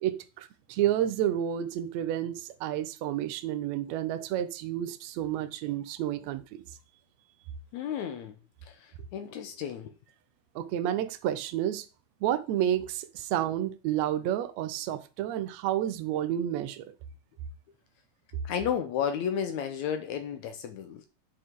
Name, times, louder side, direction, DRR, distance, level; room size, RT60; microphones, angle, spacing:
voice 1, 0.0-6.6 10.6-11.9 12.2-16.9, right 11 dB, 70° right, 1.7 m, -30 dB
voice 2, 7.7-8.4 8.7-9.9 18.4-21.1, left 8 dB, 75° left, 1.9 m, -33 dB
9.9 x 5.1 x 3.7 m
omnidirectional pair, 3.9 m